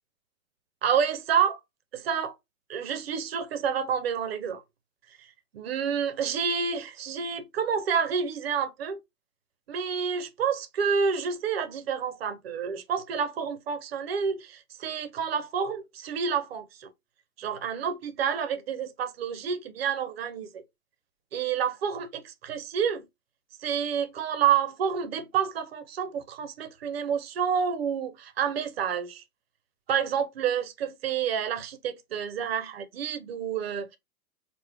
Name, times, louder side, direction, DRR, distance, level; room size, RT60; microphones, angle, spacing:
voice 1, 0.8-1.6 1.9-2.3 2.7-4.6 5.5-9.0 9.7-16.9 17.4-20.6 21.3-23.0 23.6-29.2 29.9-34.0, right 7 dB, 45° right, 0.4 m, -29 dB
3.4 x 2.1 x 3.2 m
hypercardioid pair, 135°, 47 cm